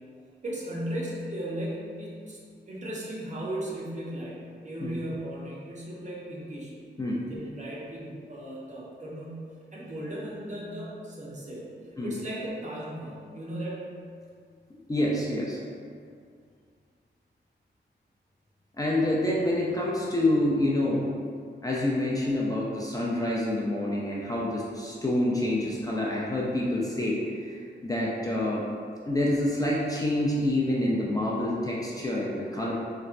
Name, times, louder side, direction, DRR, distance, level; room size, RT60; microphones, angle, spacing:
voice 1, 0.4-2.4 2.7-6.7 7.3-9.3 9.7-11.6 12.0-13.9, right 1 dB, 40° right, -5 dB, 0.6 m, -36 dB
voice 2, 14.9-15.6 18.8-21.1 21.6-28.6 29.0-32.7, left 1 dB, 20° left, -5 dB, 0.3 m, -27 dB
4.0 x 2.1 x 2.4 m, 2.2 s
wide cardioid pair, 115°, 19 cm